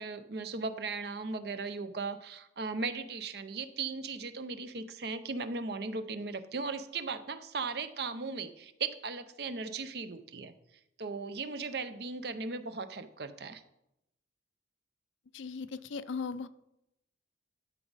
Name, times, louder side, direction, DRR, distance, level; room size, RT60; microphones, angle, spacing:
voice 1, 0.0-10.5 11.0-13.6, right 4 dB, 55° right, 11 dB, 0.6 m, -37 dB
voice 2, 15.3-16.5, left 5 dB, 80° left, 14 dB, 0.5 m, -37 dB
12.0 x 6.0 x 4.0 m, 0.85 s
head